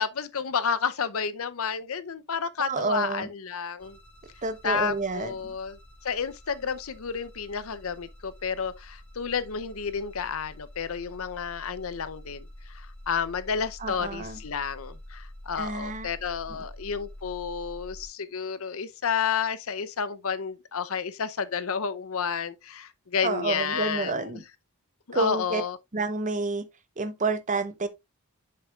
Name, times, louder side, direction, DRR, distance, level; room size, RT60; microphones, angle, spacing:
voice 1, 0.0-4.0 4.6-5.8 6.0-24.4 25.1-25.8, left 6 dB, 65° left, 0.7 m, -31 dB
voice 2, 2.6-3.3 4.4-5.5 13.8-14.4 15.6-16.1 16.5-16.6 23.2-24.4 25.1-25.6 25.9-26.7 27.0-27.9, right 3 dB, 35° right, 0.9 m, -29 dB
sound 1, 3.8-18.1, left 1 dB, 5° left, 4.0 m, -47 dB
7.7 x 6.7 x 2.4 m
head